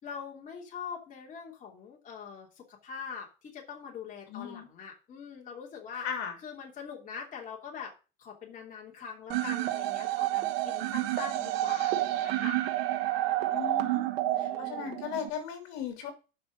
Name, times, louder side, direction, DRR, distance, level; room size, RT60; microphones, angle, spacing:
voice 1, 0.0-6.0 6.4-7.9 8.2-12.6 14.3-15.0, left 6 dB, 25° left, -1 dB, 3.0 m, -43 dB
voice 2, 4.3-4.7 6.0-6.3 13.5-14.1 14.4-16.1, left 8 dB, 60° left, 5 dB, 3.1 m, -37 dB
sound 1, 9.3-15.3, right 15 dB, 85° right, 1.9 m, -30 dB
9.4 x 5.9 x 6.1 m, 0.32 s
cardioid pair, 155°, 29 cm